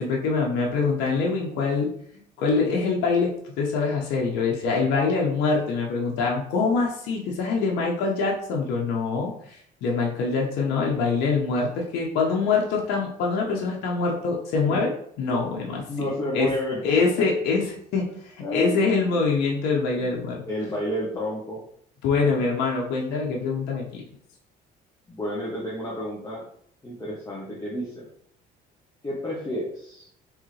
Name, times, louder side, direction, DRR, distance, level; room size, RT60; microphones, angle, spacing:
voice 1, 0.0-14.9 15.2-16.1 16.3-16.5 16.8-20.4 22.0-24.0, left 4 dB, 90° left, -1 dB, 0.9 m, -24 dB
voice 2, 15.9-17.2 18.4-19.2 20.5-21.6 25.1-26.4 26.8-28.1 29.0-30.1, left 1 dB, 20° left, -4 dB, 1.0 m, -31 dB
3.6 x 3.2 x 3.2 m, 0.64 s
cardioid pair, 110°, 17 cm